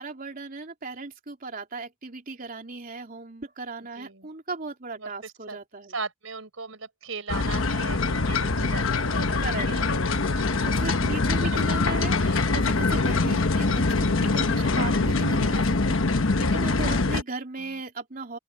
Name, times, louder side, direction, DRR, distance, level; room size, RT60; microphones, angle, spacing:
voice 1, 0.0-5.9 9.4-9.7 10.6-18.4, right 3 dB, 45° right, 3.3 m, -37 dB
voice 2, 4.0-4.3 5.0-5.6 5.9-10.7 11.4-11.6 16.5-16.8 17.6-17.8, right 4 dB, 90° right, 4.4 m, -39 dB
sound 1, 7.3-17.2, left 3 dB, 75° left, 1.1 m, -24 dB
open air
head